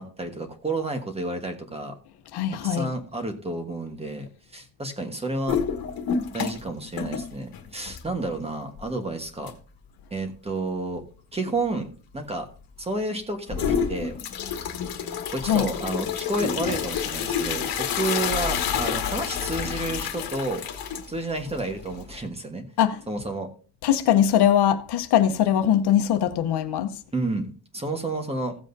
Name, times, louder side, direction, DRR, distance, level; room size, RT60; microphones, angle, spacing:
voice 1, 0.0-2.0 2.6-5.6 6.3-9.6 10.1-11.0 11.3-11.9 12.1-12.5 12.8-14.2 15.3-20.6 21.1-22.6 23.1-23.5 27.1-28.6, right 2 dB, 15° right, 1.2 m, -30 dB
voice 2, 2.3-2.9 15.4-15.7 22.8-23.0 23.8-26.9, left 10 dB, 80° left, 0.9 m, -21 dB
sound 1, 5.5-6.7 7.0-8.3 8.8-8.9 9.5-9.6 13.5-22.3, left 7 dB, 65° left, 1.4 m, -29 dB
15.5 x 7.5 x 2.6 m
cardioid pair, 170°, 39 cm